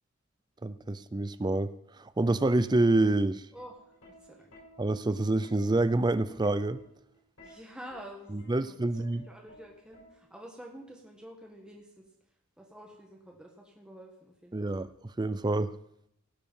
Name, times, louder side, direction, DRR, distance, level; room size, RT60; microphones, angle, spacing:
voice 1, 0.6-1.7 2.2-3.4 4.8-6.8 8.5-9.2 14.5-14.9 15.2-15.7, right 2 dB, 20° right, 14 dB, 0.4 m, -27 dB
voice 2, 3.5-3.9 4.2-4.5 7.4-12.1 12.6-14.8, equal, 5° right, -1 dB, 1.4 m, -49 dB
Plucked string instrument, 3.6-10.6 11.7-12.0, left 1 dB, 70° left, 5.8 m, -56 dB
17.0 x 6.7 x 5.5 m, 0.78 s
head